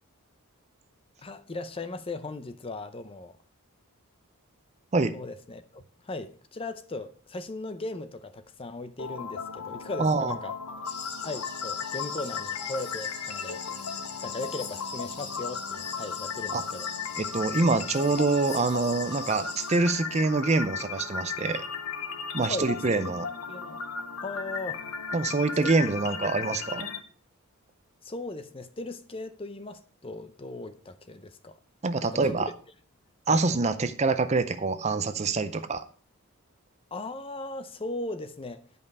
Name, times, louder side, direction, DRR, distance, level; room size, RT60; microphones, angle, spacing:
voice 1, 1.2-3.3 5.1-10.9 11.2-13.6 14.2-16.9 22.4-23.2 23.5-23.8 24.2-24.8 25.6-25.7 26.2-26.3 28.0-31.6 32.0-32.3 33.3-33.4 36.9-38.6, left 2 dB, 25° left, 0.6 m, -38 dB
sound 1, 9.0-27.0, left 6 dB, 85° left, 1.0 m, -36 dB
voice 2, 10.0-10.3 16.5-16.6 17.2-21.6 22.3-23.3 25.1-26.9 31.8-32.5 33.3-35.8, right 3 dB, 30° right, 0.5 m, -25 dB
sound 2, 10.8-19.8, left 6 dB, 45° left, 1.3 m, -40 dB
10.5 x 5.4 x 5.3 m
head